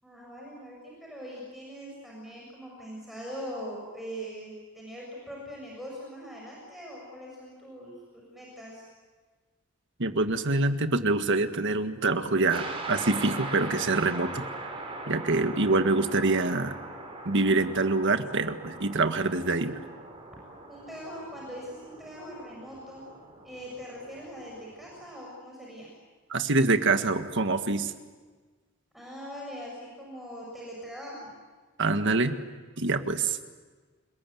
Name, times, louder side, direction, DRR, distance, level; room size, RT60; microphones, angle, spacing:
voice 1, 0.0-8.9 20.7-23.1 23.4-25.9 28.9-31.3, equal, ahead, -4 dB, 6.9 m, -42 dB
voice 2, 10.0-14.5 15.1-16.7 17.3-19.8 26.3-27.9 31.8-32.4 32.8-33.4, right 3 dB, 60° right, 8 dB, 1.8 m, -25 dB
sound 1, 12.5-25.0, right 2 dB, 25° right, 5.2 m, -41 dB
29.5 x 21.5 x 9.4 m, 1.4 s
head